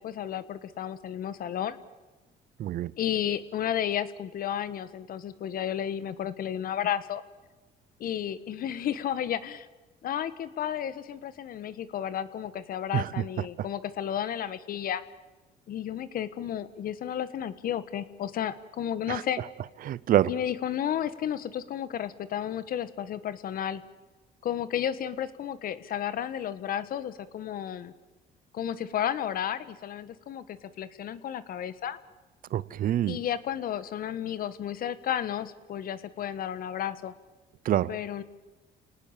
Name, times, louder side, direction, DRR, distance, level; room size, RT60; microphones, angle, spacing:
voice 1, 0.0-1.8 3.0-7.2 8.0-9.7 10.0-15.0 15.7-19.4 20.3-23.8 24.4-27.9 28.5-32.0 33.1-37.1 37.9-38.2, left 10 dB, 60° left, 1.4 m, -32 dB
voice 2, 2.6-2.9 12.9-13.1 19.1-19.2 19.8-20.3 32.5-33.2 37.7-37.9, right 12 dB, 55° right, 0.7 m, -26 dB
28.5 x 18.5 x 7.4 m
cardioid pair, 110°, 17 cm